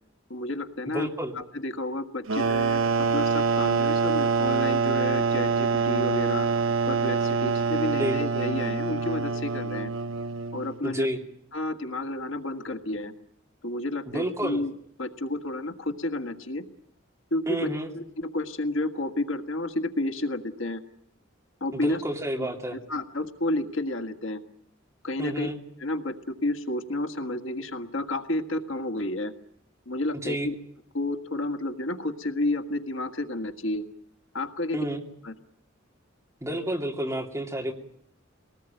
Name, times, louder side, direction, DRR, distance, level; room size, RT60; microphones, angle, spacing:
voice 1, 0.3-1.1 1.3-6.5 6.9-9.9 10.5-11.1 11.5-13.1 13.6-14.7 15.0-16.6 17.3-20.8 21.6-22.0 22.4-24.4 25.0-25.5 25.8-29.3 29.9-30.5 30.9-33.8 34.3-34.8 35.2-35.3, left 1 dB, 75° left, 7 dB, 1.7 m, -31 dB
voice 2, 0.9-1.3 8.0-8.2 10.8-11.2 14.1-14.6 17.5-17.9 21.7-22.8 25.2-25.6 30.2-30.5 34.7-35.0 36.4-37.7, equal, 15° right, 1 dB, 2.8 m, -30 dB
sound 1, 2.3-10.8, right 5 dB, 90° right, 1.0 m, -25 dB
23.5 x 19.0 x 9.0 m, 0.71 s
head